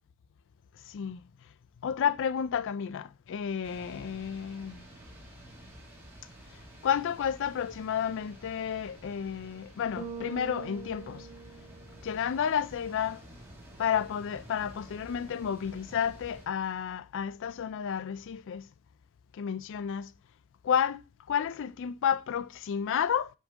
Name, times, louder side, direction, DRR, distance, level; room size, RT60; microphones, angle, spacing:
voice 1, 0.8-1.2 1.8-4.8 6.8-11.3 12.0-13.2 13.8-18.7 19.3-20.1 20.6-23.3, left 8 dB, 55° left, 0.4 m, -31 dB
sound 1, 3.6-16.5, right 1 dB, 10° right, 2.5 m, -51 dB
Bass guitar, 10.0-12.3, right 5 dB, 35° right, 2.4 m, -43 dB
7.9 x 3.7 x 6.2 m
head